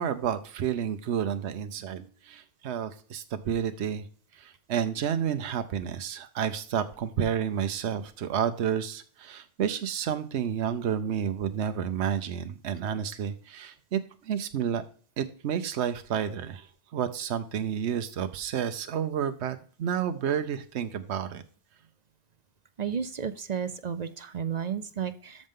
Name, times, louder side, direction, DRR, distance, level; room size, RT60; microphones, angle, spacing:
voice 1, 0.0-4.1 4.3-14.8 15.2-21.4, right 8 dB, 80° right, 9 dB, 1.0 m, -30 dB
voice 2, 22.8-25.5, right 7 dB, 50° right, 13 dB, 0.6 m, -32 dB
13.0 x 5.2 x 3.7 m, 0.43 s
omnidirectional pair, 1.1 m